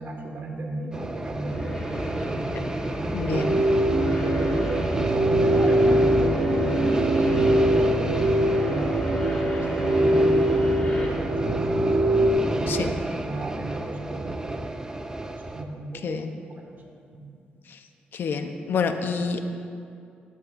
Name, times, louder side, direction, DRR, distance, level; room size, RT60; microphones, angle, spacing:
voice 1, 0.0-2.3 3.2-3.9 4.2-8.9 9.3-10.7 11.1-11.8 12.5-14.7 15.3-16.2 16.5-16.8 17.1-17.2, right 2 dB, 50° right, 1 dB, 1.8 m, -35 dB
sound 1, 0.9-15.6, right 2 dB, 20° right, 0.6 m, -31 dB
sound 2, 1.5-11.1, left 1 dB, 35° left, 2.4 m, -35 dB
voice 2, 3.1-3.5 12.7-12.9 16.0-16.3 18.1-19.4, left 5 dB, 65° left, 7 dB, 0.8 m, -27 dB
sound 3, 3.3-12.3, right 1 dB, 75° right, 0.8 m, -22 dB
13.0 x 11.0 x 2.6 m, 2.4 s
cardioid pair, 80°, 4 cm